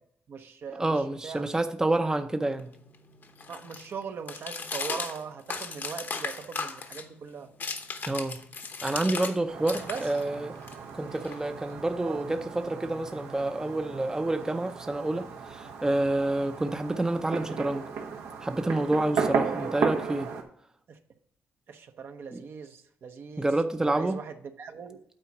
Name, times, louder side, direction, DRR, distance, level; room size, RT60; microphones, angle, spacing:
voice 1, 0.3-1.5 3.5-7.5 9.8-10.0 12.0-12.2 19.3-19.8 20.9-21.0 21.7-23.5 23.8-25.0, right 6 dB, 60° right, 0.8 m, -40 dB
voice 2, 0.8-2.7 8.1-8.4 8.8-10.6 10.9-17.9 18.4-20.3 22.3-22.4 23.4-24.2, right 2 dB, 15° right, 0.6 m, -28 dB
sound 1, 2.0-9.4 9.6-11.8, left 4 dB, 50° left, 0.9 m, -37 dB
Fireworks, 9.5-20.4, right 5 dB, 85° right, 1.1 m, -35 dB
8.9 x 4.1 x 5.9 m
cardioid pair, 70°, 4 cm